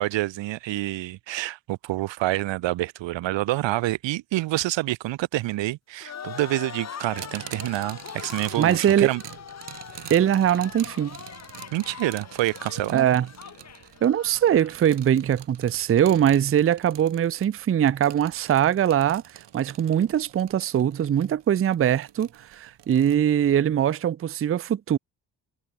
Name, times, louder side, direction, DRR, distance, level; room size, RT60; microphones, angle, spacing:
voice 1, 0.0-9.2 11.7-13.1, right 17 dB, 90° right, 0.8 m, -27 dB
sound 1, 6.0-14.8, left 8 dB, 40° left, 0.9 m, -41 dB
sound 2, 7.2-23.1, right 10 dB, 70° right, 3.5 m, -45 dB
voice 2, 8.6-9.1 10.1-11.2 12.9-13.3 14.0-25.0, right 10 dB, 35° right, 0.5 m, -22 dB
cardioid pair, 85°, 43 cm